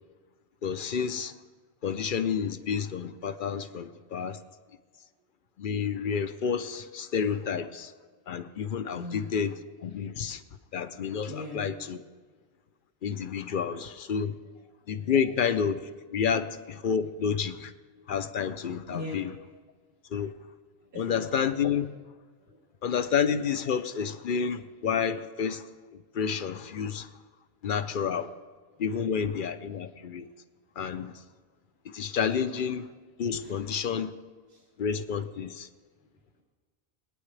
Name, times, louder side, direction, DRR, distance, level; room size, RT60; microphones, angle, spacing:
voice 1, 0.6-1.4 1.8-4.4 5.6-7.9 8.3-9.5 9.8-10.4 10.7-12.0 13.0-14.3 14.9-17.7 18.1-19.3 20.1-20.3 21.0-21.9 22.8-25.7 26.1-27.1 27.6-28.3 28.8-30.3 30.8-31.2 31.8-32.9 33.2-34.1 34.8-35.7, left 7 dB, 60° left, 0.7 m, -30 dB
voice 2, 8.9-9.3 11.2-11.7 12.3-12.4 14.4-14.5 15.0-15.1 17.9-18.0 18.9-19.2 20.8-21.3 22.4-22.8 28.7-28.8 33.4-33.6 34.5-34.6 36.0-36.4, left 3 dB, 65° right, 2.4 m, -42 dB
22.5 x 9.3 x 3.3 m
omnidirectional pair, 1.1 m